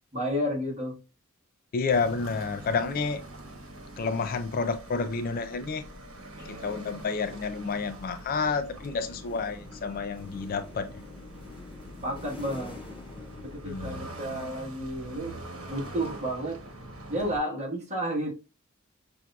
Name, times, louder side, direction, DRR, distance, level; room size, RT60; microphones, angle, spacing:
voice 1, 0.1-1.0 12.0-12.8 13.4-15.4 15.7-16.6 17.1-18.3, equal, 35° right, 1.3 m, -31 dB
voice 2, 1.7-3.2 4.0-5.9 6.5-10.9 13.7-14.0, left 4 dB, 45° left, 0.4 m, -30 dB
sound 1, 1.9-17.4, right 1 dB, 85° right, 1.0 m, -44 dB
sound 2, 7.7-14.3, left 3 dB, 5° right, 2.3 m, -46 dB
5.9 x 2.6 x 2.3 m
head